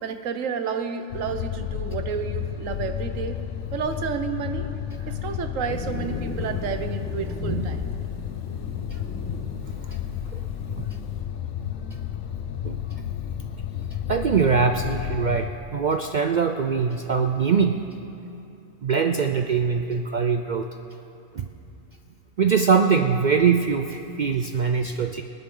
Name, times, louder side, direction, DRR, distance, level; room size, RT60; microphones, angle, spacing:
voice 1, 0.0-3.4 3.7-4.7 5.0-7.9, right 6 dB, 80° right, 8 dB, 1.2 m, -31 dB
sound 1, 1.1-15.5, left 9 dB, 70° left, 0.9 m, -32 dB
sound 2, 5.7-11.2, left 1 dB, 10° left, 1.4 m, -38 dB
voice 2, 14.1-17.8 18.8-20.7 21.3-21.5 22.4-25.2, right 6 dB, 60° right, 5 dB, 0.4 m, -22 dB
25.5 x 9.2 x 3.8 m, 2.8 s
omnidirectional pair, 1.3 m